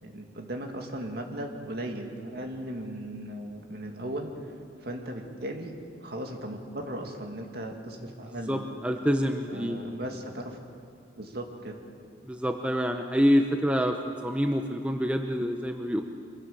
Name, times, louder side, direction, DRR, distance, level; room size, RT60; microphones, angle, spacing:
voice 1, 0.0-4.3 4.8-5.7 6.0-8.7 9.5-10.6 11.2-11.8, right 1 dB, 55° right, 2 dB, 2.3 m, -37 dB
voice 2, 8.3-9.8 12.2-16.0, equal, 5° right, 4 dB, 0.7 m, -27 dB
24.5 x 16.5 x 7.2 m, 2.4 s
head